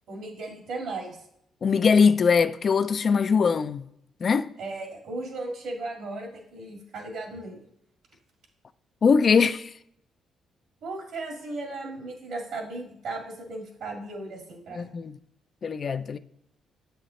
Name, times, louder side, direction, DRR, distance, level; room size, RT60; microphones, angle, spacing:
voice 1, 0.1-1.2 4.6-7.6 10.8-14.9, right 2 dB, 75° right, 2.0 m, -36 dB
voice 2, 1.6-3.9 4.2-4.5 9.0-9.7 14.7-15.2 15.6-16.2, left 5 dB, 45° left, 0.3 m, -21 dB
7.8 x 5.7 x 3.2 m
cardioid pair, 90°, 0 cm